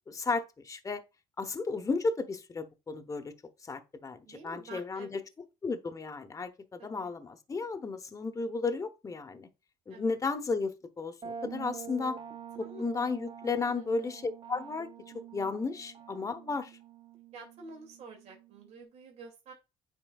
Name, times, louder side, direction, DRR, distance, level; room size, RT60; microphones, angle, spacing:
voice 1, 0.1-1.0 1.4-3.3 3.7-5.2 5.6-9.5 9.9-12.2 12.6-16.7, left 4 dB, 25° left, 1.0 m, -34 dB
voice 2, 4.2-5.2 6.8-7.1 9.9-10.1 12.6-12.8 13.8-14.2 17.3-19.5, right 3 dB, 60° right, 2.3 m, -49 dB
sound 1, 11.2-18.8, right 8 dB, 40° right, 0.7 m, -47 dB
8.9 x 4.4 x 2.3 m
supercardioid pair, 80°, 13 cm